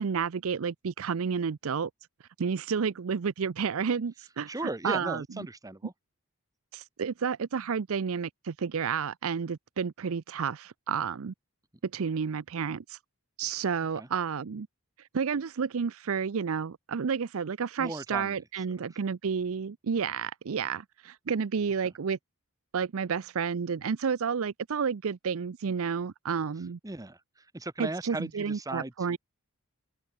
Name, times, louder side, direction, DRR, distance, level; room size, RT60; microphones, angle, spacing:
voice 1, 0.0-1.9 2.4-4.5 4.8-5.5 6.7-11.3 11.8-13.0 13.4-14.7 15.1-22.2 22.7-26.8 27.8-29.2, right 6 dB, 65° right, 0.5 m, -31 dB
voice 2, 4.5-5.9 14.0-14.1 17.8-18.4 18.7-18.9 21.8-21.9 26.8-29.2, right 2 dB, 15° right, 1.1 m, -37 dB
open air
head